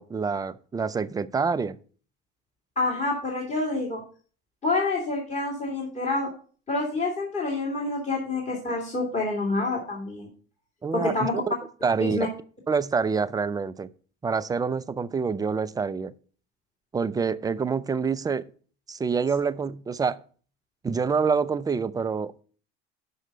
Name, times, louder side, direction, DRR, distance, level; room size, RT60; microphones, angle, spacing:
voice 1, 0.0-1.8 10.8-11.5 11.8-12.3 12.7-13.9 14.2-16.1 16.9-18.4 18.9-20.2 20.8-22.4, right 5 dB, 10° right, 0.4 m, -26 dB
voice 2, 2.8-4.0 4.6-6.3 6.7-10.3 10.9-11.4 12.1-12.3, left 2 dB, 20° left, 2.2 m, -27 dB
5.9 x 5.7 x 6.4 m
hypercardioid pair, 85°, 31 cm